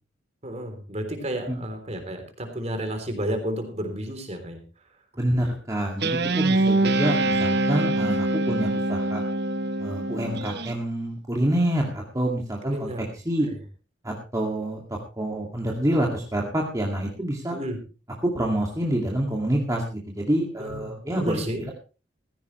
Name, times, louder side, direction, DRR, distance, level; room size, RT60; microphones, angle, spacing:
voice 1, 0.4-4.6 6.3-6.6 12.6-13.1 13.5-13.6 17.5-17.8 20.6-21.7, equal, 35° right, 6 dB, 3.4 m, -32 dB
voice 2, 5.2-9.2 9.8-12.9 13.3-13.5 14.0-14.8 15.2-17.6 18.2-21.4, right 1 dB, 20° right, -1 dB, 2.2 m, -27 dB
Guitar, 6.0-10.7, right 2 dB, 60° right, 1.0 m, -24 dB
15.5 x 15.5 x 3.2 m, 0.33 s
head